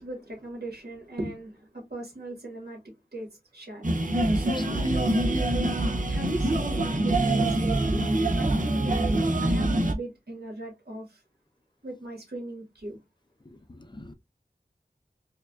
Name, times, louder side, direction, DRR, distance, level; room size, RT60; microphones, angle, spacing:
voice 1, 0.0-2.8 3.1-3.3 3.5-3.9 4.3-4.7 6.1-8.0 8.4-9.2 9.4-11.2 11.8-13.0, right 1 dB, 85° right, 1.7 m, -37 dB
sound 1, 3.8-9.9, right 1 dB, 55° right, 0.6 m, -25 dB
voice 2, 4.5-4.9 13.4-14.1, left 2 dB, 30° left, 0.5 m, -44 dB
4.6 x 2.4 x 2.3 m
wide cardioid pair, 55°, 16 cm